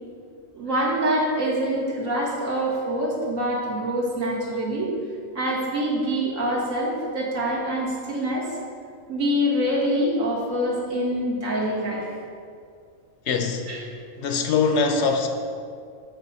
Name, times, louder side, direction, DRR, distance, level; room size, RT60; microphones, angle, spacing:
voice 1, 0.5-4.9 5.3-8.5 9.1-12.1 13.7-13.8, equal, 75° right, -5 dB, 2.0 m, -25 dB
voice 2, 13.3-13.7 14.2-15.3, left 4 dB, 65° left, 5 dB, 0.8 m, -22 dB
8.1 x 4.3 x 5.5 m, 2.3 s
omnidirectional pair, 1.4 m